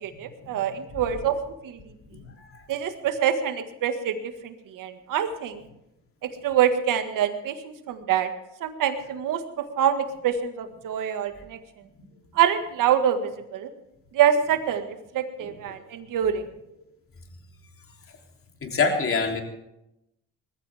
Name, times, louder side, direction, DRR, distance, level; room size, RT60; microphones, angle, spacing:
voice 1, 0.0-1.4 1.6-1.8 2.7-4.2 4.4-5.6 6.2-8.3 8.6-11.6 12.3-13.7 14.1-16.4, right 9 dB, 70° right, 8 dB, 1.9 m, -25 dB
voice 2, 2.1-2.6 15.7-15.8 18.6-19.4, left 4 dB, 40° left, 2 dB, 3.3 m, -26 dB
20.5 x 15.0 x 3.5 m, 0.86 s
supercardioid pair, 75°, 33 cm